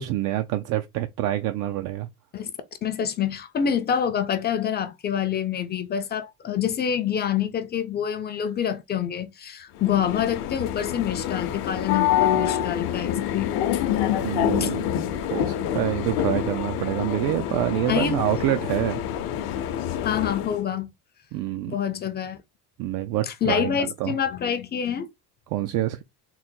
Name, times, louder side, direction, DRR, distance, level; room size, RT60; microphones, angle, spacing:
voice 1, 0.0-2.1 14.2-14.8 15.3-19.0 21.3-21.7 22.8-24.2 25.5-26.0, right 14 dB, 55° right, 0.5 m, -26 dB
voice 2, 2.8-13.6 14.6-14.7 17.9-18.2 20.0-20.9 21.7-22.4 23.2-25.1, left 8 dB, 25° left, 0.5 m, -26 dB
sound 1, 9.8-20.6, left 10 dB, 60° left, 0.7 m, -27 dB
3.9 x 2.1 x 4.2 m
cardioid pair, 135°, 41 cm